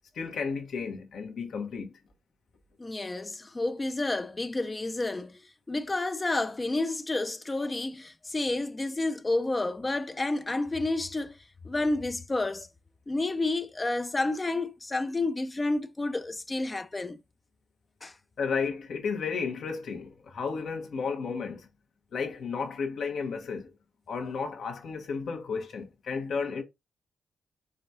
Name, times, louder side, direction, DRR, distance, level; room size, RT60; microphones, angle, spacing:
voice 1, 0.1-1.9 18.4-21.7 22.1-23.7 24.1-26.6, left 5 dB, 75° left, 1.1 m, -33 dB
voice 2, 2.8-5.4 5.7-11.4 11.6-12.7 13.1-17.2 18.0-18.1, left 2 dB, 30° left, 0.5 m, -30 dB
4.9 x 3.5 x 2.6 m
supercardioid pair, 55°, 0 cm